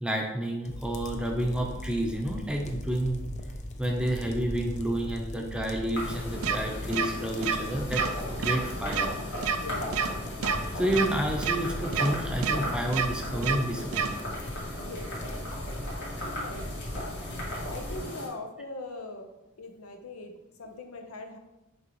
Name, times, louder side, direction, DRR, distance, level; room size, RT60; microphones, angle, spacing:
voice 1, 0.0-3.3 3.8-8.0 8.4-9.1 10.7-14.0, right 1 dB, 5° right, 1 dB, 0.7 m, -30 dB
sound 1, 0.6-18.0, left 1 dB, 35° left, 0.6 m, -39 dB
sound 2, 5.9-18.3, left 1 dB, 60° left, 2.0 m, -37 dB
sound 3, 6.4-6.6 6.9-7.1 7.4-7.6 7.9-8.1 8.4-8.6 8.9-9.1 9.4-9.6 9.9-10.1 10.4-10.6 10.9-11.1 11.4-11.6 11.9-12.1 12.4-12.6 12.9-13.1 13.4-13.6 13.9-14.1, right 7 dB, 90° right, 0.5 m, -27 dB
voice 2, 9.6-10.2 14.7-15.5 16.2-16.8 17.7-19.3 19.6-21.4, left 2 dB, 90° left, 4 dB, 0.8 m, -41 dB
6.5 x 4.7 x 3.1 m, 0.97 s
head